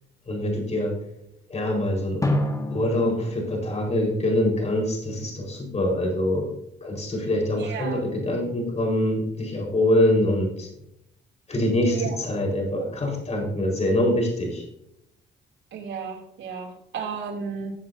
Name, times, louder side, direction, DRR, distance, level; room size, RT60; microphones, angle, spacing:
voice 1, 0.3-1.0 1.5-2.2 2.7-6.5 6.8-10.7 11.5-14.6, left 1 dB, 35° left, 0 dB, 4.6 m, -24 dB
Drum, 2.2-4.9, left 1 dB, 15° left, 1.9 m, -30 dB
voice 2, 7.6-8.0 11.9-12.2 15.7-17.7, right 6 dB, 70° right, 0 dB, 3.0 m, -33 dB
16.0 x 7.5 x 2.8 m, 0.76 s
cardioid pair, 90°, 20 cm